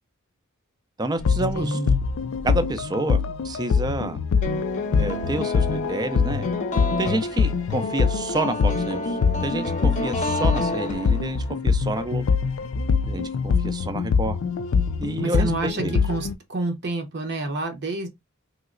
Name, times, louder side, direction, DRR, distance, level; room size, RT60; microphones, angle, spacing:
voice 1, 1.0-1.8 2.4-4.2 5.0-6.5 7.0-12.3 13.1-14.4 15.0-15.9, right 2 dB, 20° right, 0.4 m, -29 dB
sound 1, 1.2-16.3, left 5 dB, 65° left, 0.4 m, -24 dB
voice 2, 1.5-2.0 15.2-18.1, right 2 dB, 50° right, 0.7 m, -28 dB
sound 2, 4.4-11.5, left 2 dB, 35° left, 0.7 m, -30 dB
3.1 x 2.8 x 2.4 m
head